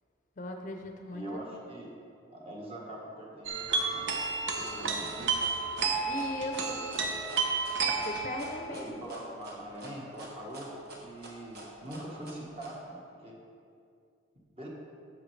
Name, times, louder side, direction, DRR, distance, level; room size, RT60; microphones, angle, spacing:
voice 1, 0.4-1.3 6.1-6.8 8.0-9.0, left 1 dB, 40° left, 3 dB, 0.6 m, -38 dB
voice 2, 1.1-1.9 2.3-4.0 4.3-5.1 8.7-13.4 14.5-14.7, right 1 dB, 30° right, -3 dB, 1.3 m, -43 dB
sound 1, 3.5-8.7, right 4 dB, 70° right, 0.8 m, -31 dB
sound 2, 4.2-12.7, right 1 dB, 55° right, 1.3 m, -47 dB
9.9 x 7.3 x 3.2 m, 2.4 s
head